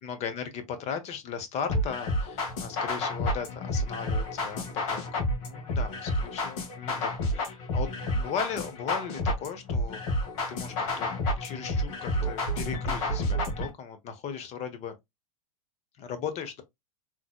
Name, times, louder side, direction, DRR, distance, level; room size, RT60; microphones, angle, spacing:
voice 1, 0.0-7.9 8.2-10.0 10.5-11.1 11.4-14.9 16.0-16.6, left 7 dB, 35° left, 1.1 m, -37 dB
sound 1, 1.7-13.7, left 1 dB, 55° left, 1.8 m, -30 dB
3.8 x 3.2 x 2.2 m
hypercardioid pair, 100°, 18 cm